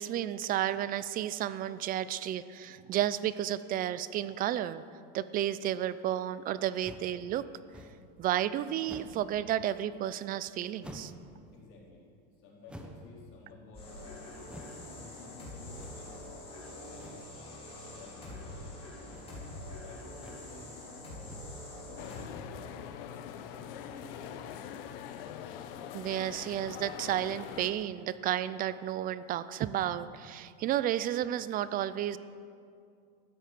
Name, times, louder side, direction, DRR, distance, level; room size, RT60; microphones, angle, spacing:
voice 1, 0.0-4.8 5.1-7.4 8.2-11.1 25.9-32.2, right 11 dB, 30° right, 15 dB, 0.4 m, -32 dB
sound 1, 6.8-7.2 7.7-8.1 8.8-9.3 10.8-11.3 12.7-13.1 14.4-14.8 15.7-16.2 16.9-17.3 18.2-18.6 19.0-19.4 20.1-20.5 21.2-21.6, right 1 dB, 5° right, 1.1 m, -49 dB
voice 2, 11.5-12.0 12.4-14.5 14.8-16.3 16.6-17.2 17.8-18.7 19.3-21.4 21.8-22.8 23.4-24.6, left 3 dB, 45° left, -4 dB, 4.2 m, -53 dB
sound 2, 13.7-22.2, left 1 dB, 20° left, 4.4 m, -45 dB
sound 3, 22.0-27.7, left 9 dB, 70° left, 1.0 m, -43 dB
13.5 x 9.2 x 7.6 m, 2.4 s
supercardioid pair, 140°, 29 cm